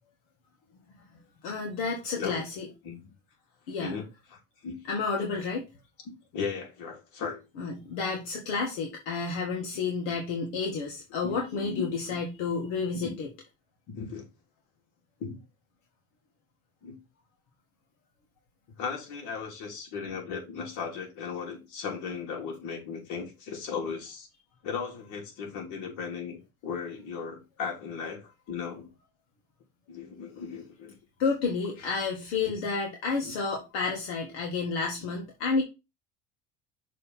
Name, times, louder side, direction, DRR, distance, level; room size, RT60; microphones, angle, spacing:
voice 1, 1.4-2.7 3.7-4.0 4.9-5.6 7.6-13.3 31.2-35.6, left 4 dB, 85° left, 1.7 m, -30 dB
voice 2, 3.8-4.8 6.3-7.4 11.2-11.9 13.0-13.1 13.9-14.2 15.2-15.3 16.8-17.0 18.8-24.3 24.6-28.9 29.9-30.9 32.4-32.5 33.2-33.3 35.5-35.6, left 6 dB, 70° left, 2.9 m, -36 dB
6.5 x 3.3 x 5.7 m
supercardioid pair, 110°, 32 cm